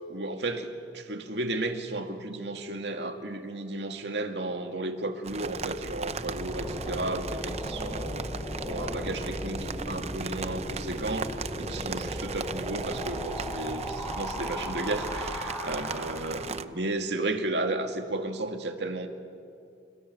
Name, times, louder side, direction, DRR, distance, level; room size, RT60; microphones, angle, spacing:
voice 1, 0.1-8.3 8.7-11.3 11.6-19.1, right 2 dB, 65° right, 5 dB, 2.4 m, -33 dB
sound 1, 5.2-16.7, right 5 dB, 35° right, 0.7 m, -38 dB
sound 2, 5.7-16.6, equal, 5° left, 7.0 m, -36 dB
29.5 x 29.0 x 7.1 m, 2.4 s
head